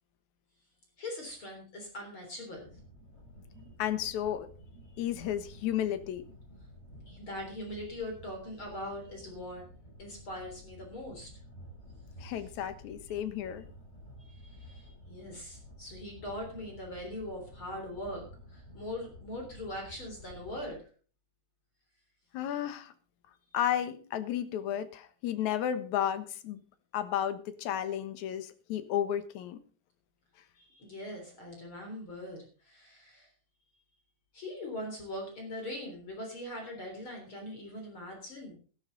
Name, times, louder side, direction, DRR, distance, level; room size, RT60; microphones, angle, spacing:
voice 1, 1.0-2.7 4.9-5.0 7.1-9.6 10.0-11.3 14.2-20.9 30.6-33.3 34.3-38.6, left 1 dB, 35° left, 2 dB, 4.2 m, -41 dB
sound 1, 2.6-20.7, equal, 20° left, 5.6 m, -52 dB
voice 2, 3.8-4.5 5.0-6.2 12.2-13.6 22.3-22.9 23.5-26.6 26.9-29.6, left 10 dB, 65° left, 10 dB, 2.4 m, -33 dB
13.5 x 13.0 x 3.9 m, 0.39 s
omnidirectional pair, 3.9 m